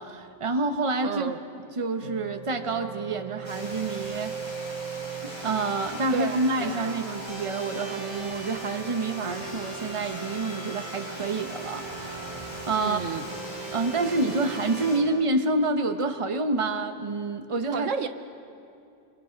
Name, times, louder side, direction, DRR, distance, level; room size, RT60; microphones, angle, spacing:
voice 1, 0.0-1.3 1.7-4.3 5.2-13.0 13.7-17.9, right 2 dB, 25° right, 7 dB, 1.1 m, -28 dB
voice 2, 1.0-1.4 6.1-7.0 12.8-13.2 17.7-18.1, right 6 dB, 70° right, 10 dB, 1.1 m, -31 dB
sound 1, 2.0-15.0, right 5 dB, 90° right, 4.0 m, -38 dB
Water, 3.4-15.0, equal, 20° left, 3.0 m, -41 dB
29.5 x 23.5 x 5.2 m, 2.7 s
omnidirectional pair, 1.3 m